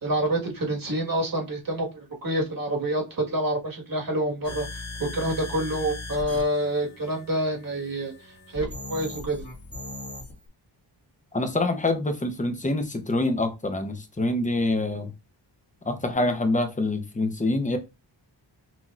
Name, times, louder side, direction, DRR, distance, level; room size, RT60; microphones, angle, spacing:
voice 1, 0.0-4.7 5.0-8.1 8.5-9.4, right 1 dB, 50° right, 1.6 m, -27 dB
sound 1, 4.4-10.4, left 2 dB, 35° left, 1.7 m, -39 dB
voice 2, 11.3-15.1 15.9-17.8, left 2 dB, 15° left, 0.7 m, -26 dB
5.9 x 2.9 x 2.4 m
wide cardioid pair, 150°, 45 cm